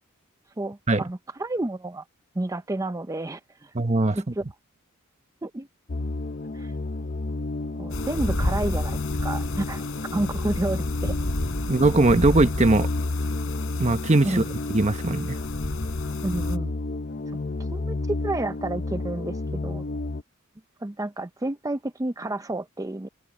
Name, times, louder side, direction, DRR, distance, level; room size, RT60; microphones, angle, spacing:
voice 1, 0.6-2.0 2.4-3.7 4.1-4.4 5.4-5.7 6.5-6.7 7.7-9.8 10.1-11.1 14.2-14.5 16.2-16.7 17.7-17.9 18.2-19.8 20.8-23.1, right 2 dB, 15° right, 0.5 m, -30 dB
voice 2, 3.7-4.2 11.7-12.9 13.8-14.4 14.7-15.4, right 2 dB, 35° right, 0.9 m, -20 dB
sound 1, 5.9-20.2, left 2 dB, 45° left, 0.6 m, -31 dB
sound 2, 7.9-16.6, left 1 dB, 75° left, 3.9 m, -32 dB
open air
head